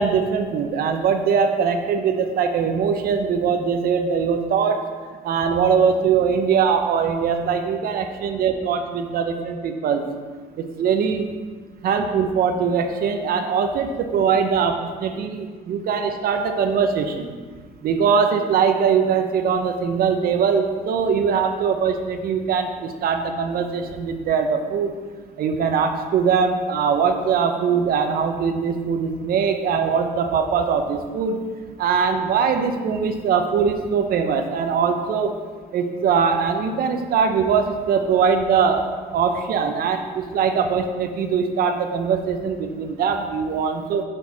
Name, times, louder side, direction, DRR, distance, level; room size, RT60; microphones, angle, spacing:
voice 1, 0.0-4.8 5.2-10.0 10.8-11.3 11.8-17.3 17.8-24.9 25.4-31.4 31.8-35.3 35.7-44.0, right 6 dB, 60° right, 6 dB, 0.8 m, -21 dB
6.2 x 5.1 x 5.6 m, 1.5 s
cardioid pair, 110°, 17 cm